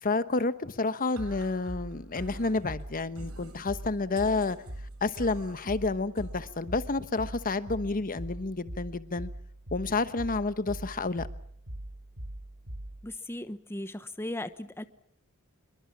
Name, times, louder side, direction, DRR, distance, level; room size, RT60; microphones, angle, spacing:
voice 1, 0.0-4.6 5.0-9.3 9.7-11.3, left 3 dB, 40° left, 13 dB, 1.1 m, -30 dB
sound 1, 1.2-13.2, right 1 dB, 75° right, 3.9 m, -42 dB
voice 2, 13.0-14.8, left 1 dB, 10° left, 11 dB, 1.0 m, -37 dB
26.5 x 23.0 x 7.2 m, 0.65 s
head